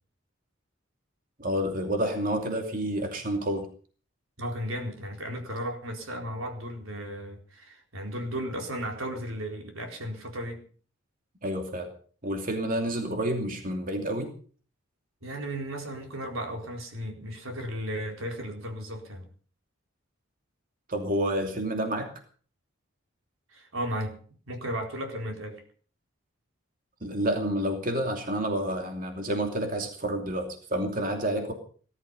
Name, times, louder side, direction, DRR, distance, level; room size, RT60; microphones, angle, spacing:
voice 1, 1.4-3.7 11.4-11.9 12.2-14.3 20.9-22.1 27.0-31.5, right 1 dB, 40° right, 3 dB, 2.7 m, -29 dB
voice 2, 4.4-10.6 15.2-19.3 23.5-24.2 24.5-25.6, equal, 90° right, 3 dB, 4.2 m, -35 dB
18.5 x 12.5 x 5.6 m, 0.44 s
head